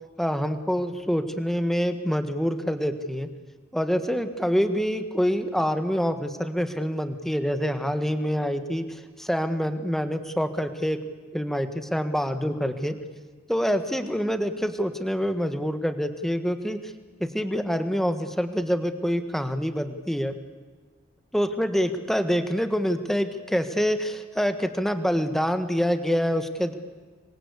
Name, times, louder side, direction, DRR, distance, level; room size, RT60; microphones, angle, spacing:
voice 1, 0.2-3.3 3.7-11.0 11.3-12.9 13.5-16.9 17.2-20.4 21.3-26.7, equal, ahead, 8 dB, 1.6 m, -26 dB
26.5 x 22.5 x 8.5 m, 1.4 s
head